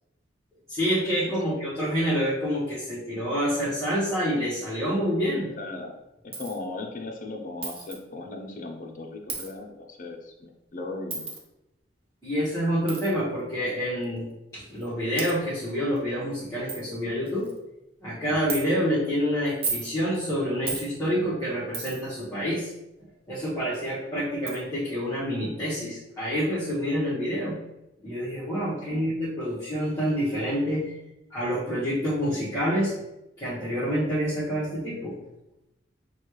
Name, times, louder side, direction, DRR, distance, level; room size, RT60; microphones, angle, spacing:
voice 1, 0.7-5.5 12.2-17.5 18.0-22.7 23.3-27.6 28.0-30.9 31.3-33.0 33.4-35.2, equal, 15° left, -11 dB, 1.2 m, -27 dB
voice 2, 5.6-6.0 6.2-11.3 28.9-29.0, left 2 dB, 45° left, 3 dB, 0.6 m, -37 dB
Coin (dropping), 6.3-6.6 7.6-8.0 9.3-9.5 11.1-11.4 12.9-13.1 14.0-14.1 14.8-14.9 15.2-15.3 16.0-16.1 16.3-16.4 16.7-16.8 17.3-17.6 18.5-18.6 19.5-19.9 20.7-20.9 21.7-22.1 23.7-23.8 24.5-24.6, right 4 dB, 30° right, 0.7 m, -33 dB
6.2 x 2.3 x 3.1 m, 0.90 s
head